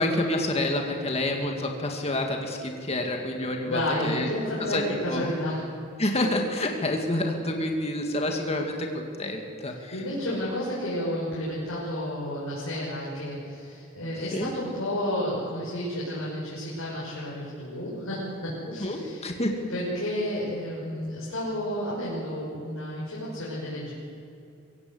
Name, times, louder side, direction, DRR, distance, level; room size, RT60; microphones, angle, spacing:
voice 1, 0.0-4.3 4.6-4.8 5.1-5.5 6.0-10.0 14.3-14.5 18.7-19.6, left 1 dB, 30° left, 2 dB, 2.2 m, -28 dB
voice 2, 3.6-5.6 9.9-19.2 19.7-23.9, left 1 dB, 90° left, -7 dB, 6.3 m, -31 dB
24.5 x 16.5 x 8.1 m, 2.7 s
head